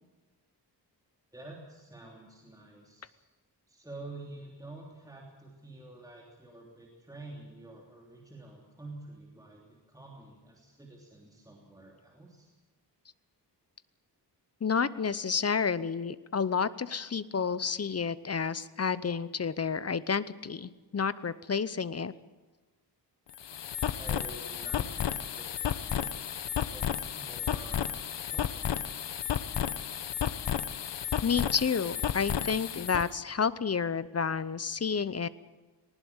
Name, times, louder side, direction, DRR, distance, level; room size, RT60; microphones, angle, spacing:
voice 1, 1.3-3.2 3.7-12.5 23.9-26.1 26.7-27.9 28.3-28.8, right 2 dB, 10° right, -2 dB, 3.3 m, -48 dB
voice 2, 14.6-22.1 31.2-35.3, left 6 dB, 35° left, 16 dB, 0.8 m, -30 dB
sound 1, 23.3-33.1, left 9 dB, 80° left, 1.0 m, -33 dB
20.0 x 19.0 x 7.2 m, 1.2 s
wide cardioid pair, 120°, 42 cm